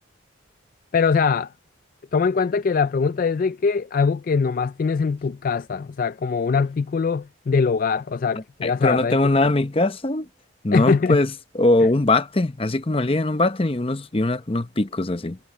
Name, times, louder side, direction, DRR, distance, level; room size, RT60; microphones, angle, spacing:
voice 1, 0.9-1.5 2.1-9.2 10.7-11.2, left 5 dB, 40° left, 0.3 m, -22 dB
voice 2, 8.6-10.3 10.6-15.4, left 2 dB, 25° left, 0.7 m, -21 dB
head